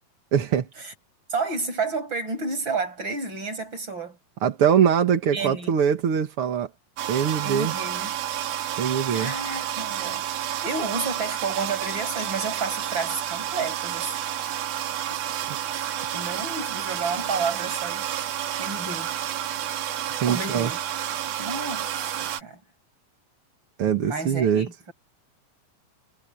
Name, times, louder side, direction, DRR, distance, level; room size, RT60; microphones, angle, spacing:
voice 1, 0.3-0.7 4.4-6.7 7.1-7.7 8.8-9.3 15.5-15.6 20.2-20.7 23.8-24.7, right 8 dB, 50° right, 1.9 m, -22 dB
voice 2, 1.3-4.2 5.3-5.7 7.4-8.1 9.1-10.3 10.6-14.3 15.1-15.2 15.7-18.0 18.6-19.2 20.3-20.8 21.4-22.6 24.0-24.9, right 4 dB, 30° right, 7.3 m, -31 dB
sound 1, 7.0-22.4, right 11 dB, 90° right, 3.6 m, -30 dB
omnidirectional pair, 4.1 m